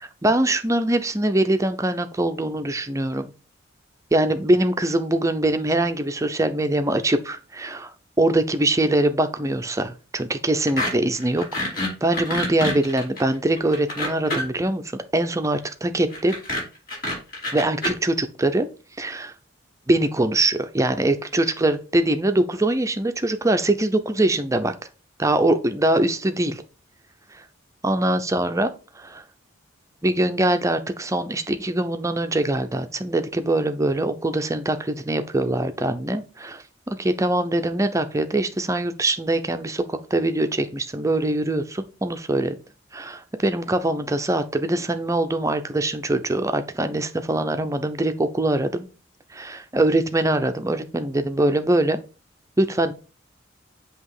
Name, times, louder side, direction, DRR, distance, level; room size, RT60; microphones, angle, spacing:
voice 1, 0.0-3.3 4.1-16.3 17.5-18.7 19.0-19.3 19.9-24.7 25.2-26.6 27.8-28.7 29.0-29.2 30.0-42.5 42.9-48.9 49.3-52.0 52.6-52.9, right 1 dB, 15° right, 9 dB, 0.6 m, -23 dB
sound 1, 10.7-10.9 11.2-14.6 16.1-17.9, left 1 dB, 50° left, 3.3 m, -27 dB
7.6 x 3.0 x 4.8 m, 0.33 s
head